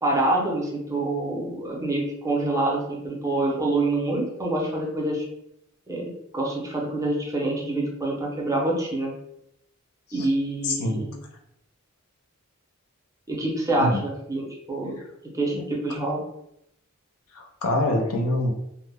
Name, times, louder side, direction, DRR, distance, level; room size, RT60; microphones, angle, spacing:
voice 1, 0.0-5.2 5.9-9.1 10.1-11.1 13.3-15.0 15.3-16.2, right 2 dB, 15° right, -2 dB, 0.5 m, -26 dB
voice 2, 10.6-11.1 13.8-14.0 15.5-15.6 17.3-18.5, left 1 dB, 70° left, 1 dB, 0.5 m, -25 dB
2.0 x 2.0 x 3.3 m, 0.78 s
head